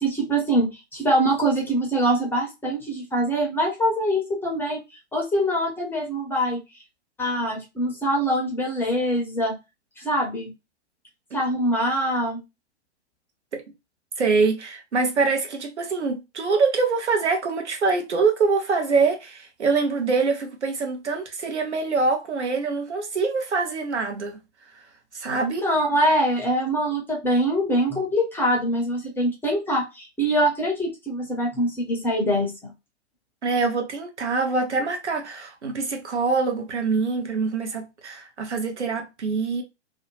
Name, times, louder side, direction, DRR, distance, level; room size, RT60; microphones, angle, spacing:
voice 1, 0.0-4.8 5.1-6.6 7.2-9.6 10.0-10.5 11.3-12.4 25.6-32.7, equal, 5° left, 0.6 m, -24 dB
voice 2, 14.2-24.4 25.1-25.6 33.4-39.6, right 4 dB, 75° right, 0.9 m, -24 dB
2.7 x 2.1 x 2.9 m
figure-of-eight pair, 110°, 34 cm